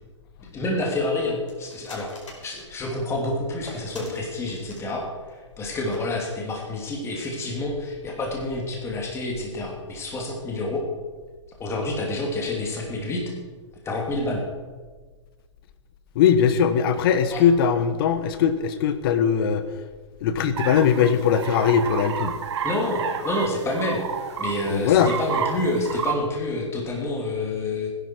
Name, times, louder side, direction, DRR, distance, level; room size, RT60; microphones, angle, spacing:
voice 1, 0.5-2.2 2.4-10.8 11.6-13.2 13.8-14.4 17.3-17.4 22.6-24.0 24.4-27.9, left 2 dB, 15° left, -1 dB, 2.9 m, -28 dB
sound 1, 1.5-3.0 3.6-4.9 5.2-5.3 5.7-5.8 5.9-6.0 6.4-6.6, left 2 dB, 80° left, 4.9 m, -41 dB
voice 2, 16.1-19.6 20.2-22.3 24.7-25.1, left 7 dB, 50° left, 11 dB, 1.4 m, -20 dB
sound 2, 20.6-26.2, right 8 dB, 65° right, 1.5 m, -30 dB
17.0 x 11.0 x 4.7 m, 1.4 s
hypercardioid pair, 125°, 16 cm